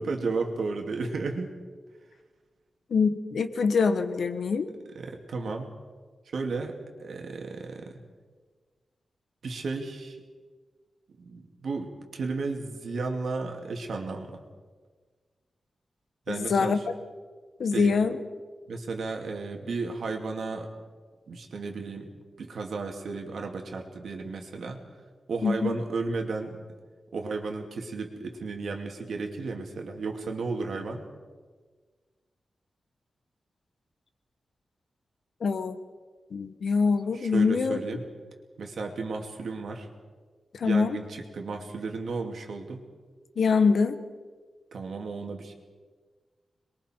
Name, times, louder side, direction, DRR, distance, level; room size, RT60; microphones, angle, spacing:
voice 1, 0.0-1.5 5.0-5.7 6.3-8.0 9.4-10.2 11.2-14.4 16.3-16.8 17.7-18.0 18.7-20.7 21.3-22.1 22.4-24.8 25.3-26.6 27.1-31.0 37.2-38.0 38.6-39.9 40.6-42.8 44.7-45.5, right 3 dB, 70° right, 3 dB, 2.4 m, -33 dB
voice 2, 2.9-4.7 16.3-16.8 17.6-18.2 25.4-25.8 35.4-35.8 36.3-37.8 40.5-41.0 43.4-44.0, left 5 dB, 65° left, 9 dB, 1.2 m, -24 dB
27.0 x 22.0 x 4.5 m, 1.5 s
wide cardioid pair, 180°, 0 cm